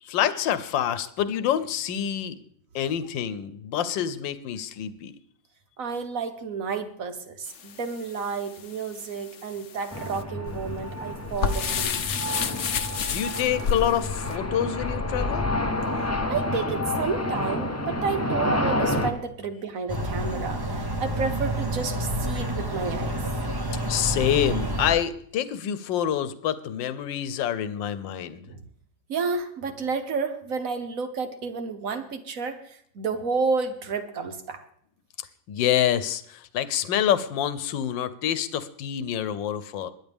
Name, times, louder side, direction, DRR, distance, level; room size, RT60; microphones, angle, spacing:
voice 1, 0.0-2.4 2.7-5.1 13.1-15.5 23.9-28.4 35.5-39.9, left 10 dB, 80° left, 14 dB, 1.5 m, -27 dB
voice 2, 5.8-12.0 16.3-23.2 28.5-28.6 29.1-34.6, right 5 dB, 50° right, 8 dB, 1.5 m, -31 dB
sound 1, 7.5-14.4, left 7 dB, 55° left, 0.9 m, -31 dB
sound 2, 9.9-19.1, left 1 dB, 15° left, 0.5 m, -29 dB
sound 3, 19.9-24.9, right 1 dB, 15° right, 0.9 m, -29 dB
21.5 x 10.0 x 3.5 m, 0.63 s
omnidirectional pair, 2.0 m